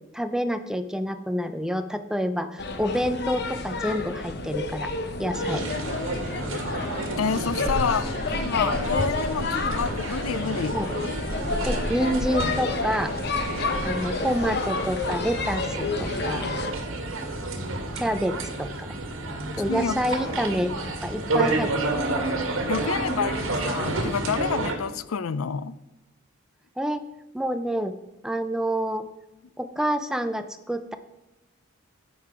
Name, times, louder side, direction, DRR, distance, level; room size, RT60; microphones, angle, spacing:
voice 1, 0.1-4.9 5.2-5.6 10.7-10.9 11.6-13.1 13.8-16.5 18.0-18.9 19.6-20.7 21.0-22.0 26.8-27.0 27.3-27.9 28.2-29.1 29.6-31.0, equal, 5° right, 0.5 m, -28 dB
sound 1, 2.6-16.7, left 3 dB, 50° left, 0.9 m, -30 dB
sound 2, 5.3-24.7, right 2 dB, 80° right, 2.0 m, -30 dB
sound 3, 7.1-14.5, right 1 dB, 50° right, 3.8 m, -44 dB
voice 2, 7.2-10.7 19.7-20.0 22.7-25.8, left 6 dB, 90° left, 0.5 m, -28 dB
10.5 x 7.8 x 4.8 m
head